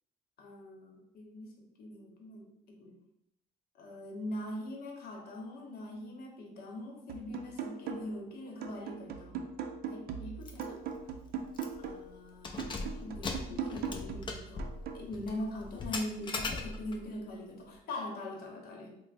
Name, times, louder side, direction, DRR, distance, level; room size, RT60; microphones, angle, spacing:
voice 1, 0.4-3.0 3.7-9.5 9.8-10.9 11.8-14.7 14.9-19.0, left 1 dB, 65° left, 1 dB, 0.9 m, -42 dB
sound 1, 7.1-8.3 8.6-12.1 12.6-15.1, right 6 dB, 65° right, 0.4 m, -40 dB
Keys jangling, 10.5-10.7 11.0-11.1 11.5-11.9 12.3-17.1, left 3 dB, 30° left, 0.4 m, -39 dB
3.1 x 2.0 x 4.0 m, 0.80 s
cardioid pair, 110°, 17 cm